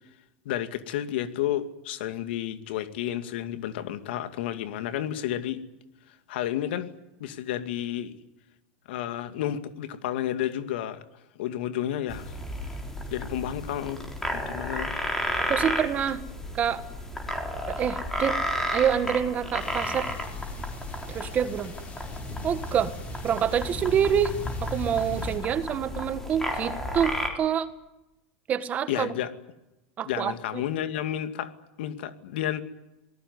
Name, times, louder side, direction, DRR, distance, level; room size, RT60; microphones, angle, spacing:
voice 1, 0.4-5.6 6.3-6.9 7.2-8.1 8.9-11.0 11.4-12.3 13.1-14.0 14.3-14.9 28.9-29.3 30.1-31.5 31.8-32.6, left 11 dB, 70° left, 10 dB, 2.4 m, -31 dB
sound 1, 12.1-27.3, left 1 dB, 5° left, 4.1 m, -33 dB
voice 2, 15.5-16.2 16.5-16.8 17.7-18.4 18.7-20.1 21.1-21.7 22.4-22.9 23.2-24.3 24.6-27.7 28.5-29.1 30.0-30.3, right 8 dB, 25° right, 12 dB, 1.5 m, -26 dB
sound 2, 19.6-25.4, left 2 dB, 25° left, 5.7 m, -38 dB
27.0 x 19.0 x 9.7 m, 0.95 s
supercardioid pair, 155°, 6 cm